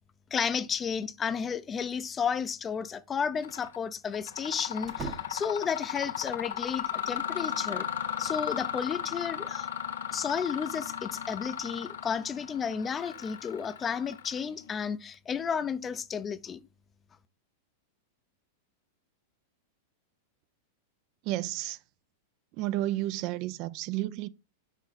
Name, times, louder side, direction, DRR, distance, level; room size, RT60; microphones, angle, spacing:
voice 1, 0.3-7.9 8.2-9.7 10.1-16.6, left 6 dB, 20° left, 0.5 m, -32 dB
sound 1, 1.9-2.5 2.8-2.9 4.8-5.7 7.2-8.2, right 6 dB, 25° right, 0.8 m, -44 dB
Mechanisms, 3.4-3.8 4.1-14.7, left 9 dB, 90° left, 0.8 m, -36 dB
voice 2, 21.2-21.8 22.5-24.3, right 15 dB, 45° right, 0.4 m, -31 dB
6.3 x 4.8 x 4.1 m
supercardioid pair, 140°, 0 cm